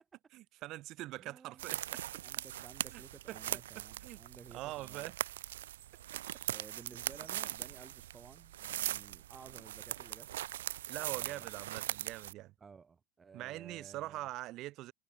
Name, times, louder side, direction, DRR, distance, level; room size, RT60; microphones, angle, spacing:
voice 1, 0.3-2.0 2.9-3.0 3.3-3.4 4.0-4.2 4.5-5.2 10.9-12.5 13.3-14.9, right 17 dB, 50° right, 3.0 m, -43 dB
voice 2, 1.2-1.6 2.2-5.1 6.5-10.3 10.9-11.5 12.6-14.3, right 5 dB, 25° right, 2.2 m, -55 dB
sound 1, 1.6-12.3, right 13 dB, 70° right, 0.5 m, -41 dB
figure-of-eight pair, 75°, 0 cm